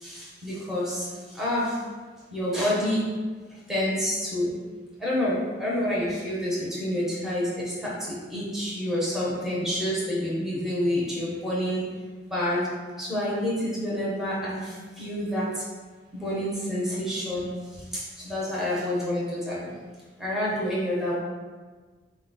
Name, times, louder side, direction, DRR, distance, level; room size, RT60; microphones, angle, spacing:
voice 1, 0.0-1.8 2.3-3.1 3.7-4.6 5.0-11.9 12.3-12.7 13.0-15.6 16.1-17.5 17.9-19.7 20.2-21.1, left 1 dB, ahead, -7 dB, 0.8 m, -28 dB
4.1 x 2.3 x 3.9 m, 1.4 s
head